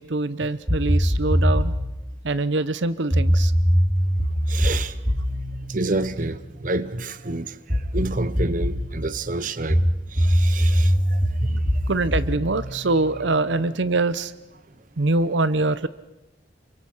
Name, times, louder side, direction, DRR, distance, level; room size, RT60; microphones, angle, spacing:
voice 1, 0.0-1.7 2.2-3.5 11.9-14.3 15.0-15.9, right 2 dB, 75° right, 0.8 m, -24 dB
sound 1, 0.7-2.0 3.1-6.8 7.7-8.9 9.7-13.6, equal, 20° right, 3.4 m, -22 dB
voice 2, 4.5-5.0 5.7-7.5 7.9-9.8 10.2-11.6, right 2 dB, 45° right, 0.9 m, -28 dB
28.0 x 24.0 x 5.6 m
head